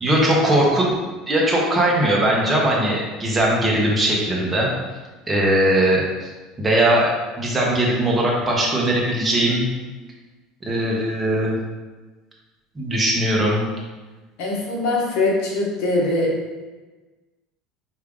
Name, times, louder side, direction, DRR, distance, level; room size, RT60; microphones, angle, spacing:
voice 1, 0.0-1.0 1.3-4.7 5.3-6.3 6.6-7.1 7.4-9.7 10.6-11.5 12.7-13.7, right 1 dB, 15° right, -3 dB, 0.9 m, -19 dB
voice 2, 14.4-16.3, left 2 dB, 65° left, -3 dB, 1.2 m, -22 dB
4.7 x 2.7 x 3.6 m, 1.2 s
cardioid pair, 150°, 0 cm